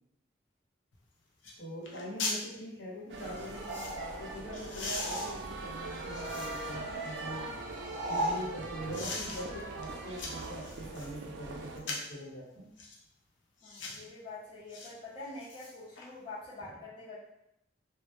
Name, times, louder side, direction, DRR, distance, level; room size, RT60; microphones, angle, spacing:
sound 1, 0.9-1.0 1.4-1.6 1.8-2.4 3.2-4.0 4.5-6.8 7.3-8.4 8.9-9.4 9.8-11.1 11.8-12.2 12.8-13.0 13.6-14.0 14.7-14.9 15.3-16.1 16.4-16.5, left 3 dB, 90° left, 0.5 m, -41 dB
voice 1, 1.6-7.5 8.1-12.7 13.9-14.0 16.6-16.7, right 1 dB, 75° left, -7 dB, 0.9 m, -43 dB
sound 2, 3.1-11.8, right 2 dB, 70° right, 0.3 m, -41 dB
sound 3, 3.5-5.8 6.0-8.5, right 1 dB, 20° right, 0.7 m, -39 dB
voice 2, 13.6-17.3, left 2 dB, 30° left, -9 dB, 0.5 m, -45 dB
2.0 x 2.0 x 2.9 m, 0.82 s
head